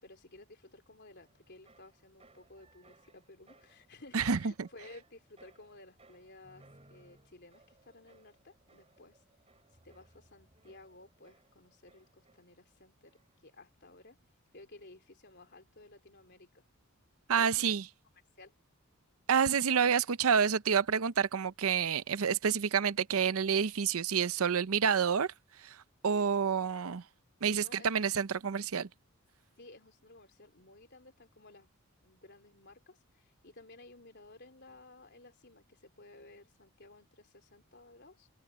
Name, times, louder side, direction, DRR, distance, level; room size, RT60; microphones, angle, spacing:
voice 1, 0.0-9.2 9.8-13.1 13.4-14.2 14.5-16.6 17.3-17.8 18.4-18.6 27.5-28.1 29.6-31.7 32.0-38.3, left 2 dB, 50° left, 3.8 m, -56 dB
sound 1, 1.1-12.8 13.0-13.6, right 2 dB, 30° right, 3.7 m, -64 dB
voice 2, 17.3-17.8 19.3-25.3 25.6-25.8 26.0-27.0 27.4-28.9, right 7 dB, 75° right, 0.6 m, -28 dB
open air
head